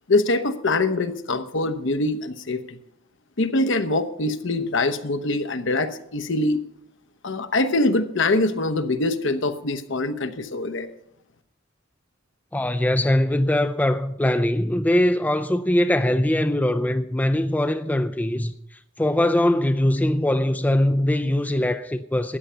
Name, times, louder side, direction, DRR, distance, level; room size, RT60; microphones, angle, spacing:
voice 1, 0.1-2.8 3.4-6.6 7.2-10.9, left 2 dB, 65° left, 0.9 m, -23 dB
voice 2, 12.5-18.5 19.0-22.4, left 1 dB, 10° left, 0.4 m, -21 dB
13.5 x 9.0 x 5.6 m
head